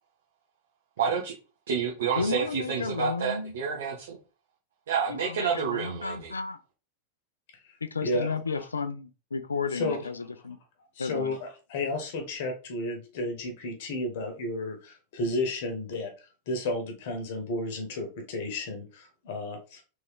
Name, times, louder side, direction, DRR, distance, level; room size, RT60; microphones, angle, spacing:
voice 1, 1.0-1.3 1.7-4.2 4.9-6.3, right 6 dB, 60° right, 0.9 m, -29 dB
voice 2, 2.2-3.5 5.1-6.6 7.8-10.6 11.0-11.4, left 4 dB, 75° left, 0.4 m, -33 dB
voice 3, 8.0-8.4 9.7-10.0 11.0-16.1 16.5-19.8, left 2 dB, 50° left, 1.1 m, -32 dB
3.5 x 3.0 x 3.6 m
figure-of-eight pair, 90°, 0 cm